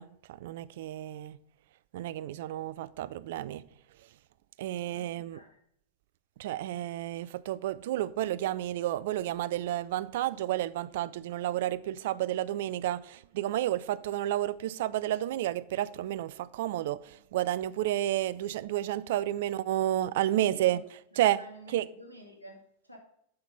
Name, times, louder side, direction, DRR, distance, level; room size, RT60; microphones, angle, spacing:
voice 1, 0.0-1.4 1.9-3.6 4.6-5.4 6.4-20.8 21.2-21.4 21.7-21.9, right 13 dB, 55° right, 0.4 m, -31 dB
voice 2, 4.8-5.6 20.3-20.8 21.1-23.0, right 1 dB, 85° left, 2.1 m, -50 dB
8.6 x 6.0 x 5.4 m
figure-of-eight pair, 90°, 0 cm